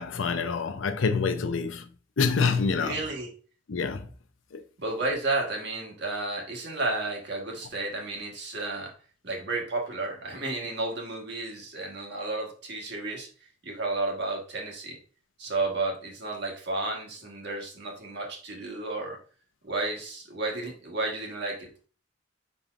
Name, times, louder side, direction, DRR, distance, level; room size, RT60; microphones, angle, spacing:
voice 1, 0.0-1.8 2.2-3.0 3.7-4.1 4.5-4.6, left 5 dB, 80° left, 0.6 m, -26 dB
voice 2, 2.7-3.3 4.8-8.9 9.2-13.3 13.6-15.0 15.4-19.2 19.6-21.7, right 2 dB, 60° right, 1.4 m, -32 dB
5.2 x 4.2 x 2.4 m
head